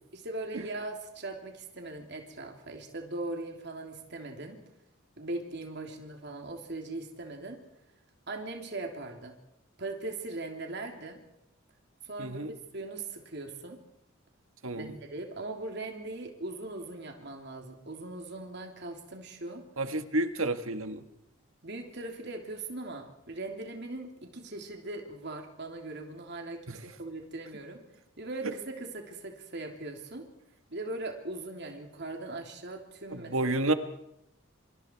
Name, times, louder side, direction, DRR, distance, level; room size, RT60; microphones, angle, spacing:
voice 1, 0.1-4.6 5.2-7.6 8.3-9.4 9.8-11.2 12.0-13.8 14.7-19.6 21.6-27.8 28.2-30.2 30.7-33.6, right 2 dB, 55° right, 2 dB, 3.2 m, -40 dB
voice 2, 12.2-12.5 14.6-15.0 19.8-21.0 26.7-26.8 28.4-28.5 33.1-33.7, right 2 dB, 80° right, 9 dB, 1.6 m, -30 dB
26.5 x 25.5 x 4.6 m, 0.79 s
head